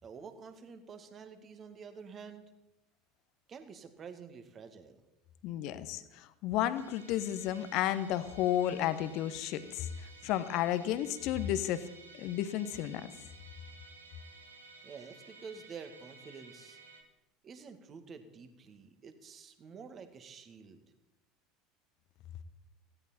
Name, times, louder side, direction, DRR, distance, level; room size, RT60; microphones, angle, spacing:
voice 1, 0.0-2.4 3.5-5.0 14.8-16.8 17.4-20.8, right 5 dB, 30° right, 8 dB, 2.0 m, -49 dB
voice 2, 5.4-9.9 10.2-11.8 12.1-13.1, left 12 dB, 50° left, 14 dB, 1.2 m, -32 dB
Musical instrument, 6.7-17.0, right 3 dB, 80° right, 2.4 m, -55 dB
18.0 x 16.5 x 4.4 m, 0.92 s
figure-of-eight pair, 75°, 0 cm